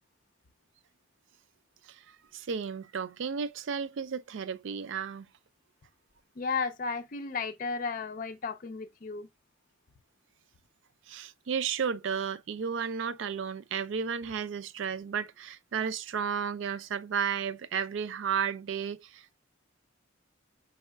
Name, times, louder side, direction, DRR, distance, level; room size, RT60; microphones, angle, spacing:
voice 1, 1.8-5.3 11.1-19.4, right 7 dB, 65° right, 0.4 m, -33 dB
voice 2, 6.4-9.3, left 4 dB, 40° left, 0.4 m, -34 dB
5.4 x 4.0 x 2.2 m
head